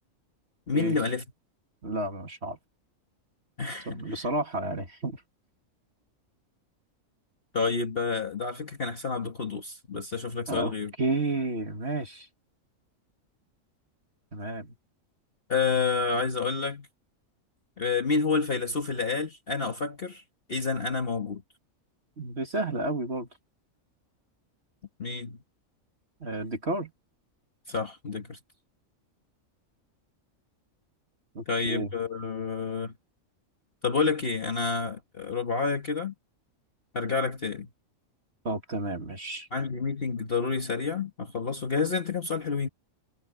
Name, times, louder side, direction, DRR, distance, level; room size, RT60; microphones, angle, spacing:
voice 1, 0.7-1.2 3.6-4.3 7.5-10.9 15.5-16.9 17.8-20.2 20.5-21.4 25.0-25.4 27.7-28.4 31.5-32.9 33.8-36.1 36.9-37.7 39.5-42.7, left 4 dB, 45° left, 1.7 m, -29 dB
voice 2, 1.8-2.6 3.9-5.2 10.5-10.7 11.0-12.3 14.3-14.7 22.2-23.3 26.2-26.9 31.3-31.9 38.4-39.5, right 2 dB, 50° right, 2.4 m, -31 dB
omnidirectional pair, 1.4 m